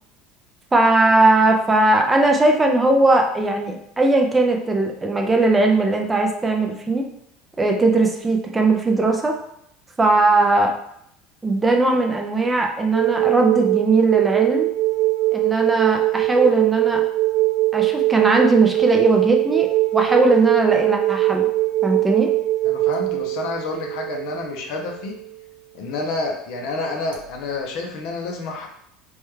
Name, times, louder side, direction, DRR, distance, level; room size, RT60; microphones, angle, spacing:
voice 1, 0.7-7.1 7.6-9.4 10.0-10.7 11.4-14.7 15.3-17.0 17.7-21.5 21.8-22.3, right 2 dB, 10° right, 2 dB, 0.3 m, -19 dB
sound 1, 12.9-25.4 27.1-27.2, right 17 dB, 75° right, 0.5 m, -21 dB
voice 2, 22.6-25.2 25.7-28.7, left 3 dB, 50° left, 2 dB, 0.6 m, -29 dB
3.3 x 2.2 x 3.1 m, 0.73 s
cardioid pair, 170°, 0 cm